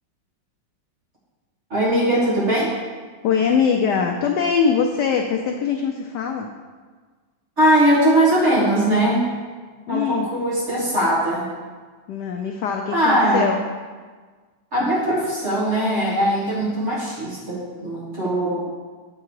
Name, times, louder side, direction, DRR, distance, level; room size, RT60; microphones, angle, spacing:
voice 1, 1.7-2.7 7.6-9.2 9.9-11.5 12.9-13.5 14.7-18.7, right 1 dB, 30° right, -7 dB, 2.2 m, -20 dB
voice 2, 3.2-6.5 9.9-10.3 12.1-13.6, left 6 dB, 85° left, 3 dB, 0.9 m, -22 dB
7.6 x 4.7 x 4.6 m, 1.4 s
omnidirectional pair, 2.4 m